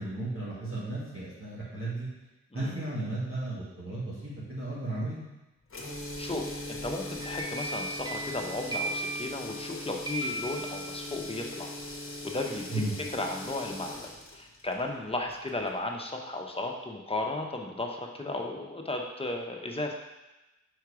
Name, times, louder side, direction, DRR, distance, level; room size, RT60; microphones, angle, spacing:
voice 1, 0.0-2.1 2.5-5.3 12.7-12.9, right 2 dB, 45° right, -9 dB, 2.1 m, -34 dB
sound 1, 5.7-15.8, left 1 dB, 45° left, 1.1 m, -40 dB
voice 2, 6.2-11.7 12.2-12.8 13.1-14.0 14.3-19.9, left 2 dB, 20° left, 1 dB, 0.9 m, -35 dB
sound 2, 7.0-9.7 10.0-11.3, right 1 dB, 15° right, 0.9 m, -37 dB
4.6 x 4.6 x 4.9 m, 1.0 s
cardioid pair, 70°, 30 cm